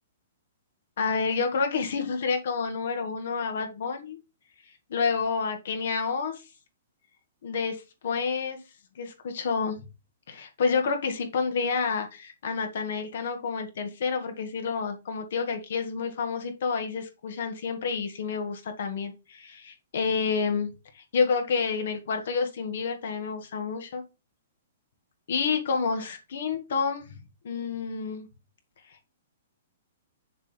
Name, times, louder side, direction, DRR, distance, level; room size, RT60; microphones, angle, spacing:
voice 1, 1.0-4.2 4.9-6.3 7.4-8.6 9.0-9.8 10.3-24.0 25.3-27.2 27.4-28.3, left 5 dB, 70° left, 6 dB, 1.9 m, -29 dB
6.6 x 3.5 x 6.0 m, 0.27 s
hypercardioid pair, 145°, 0 cm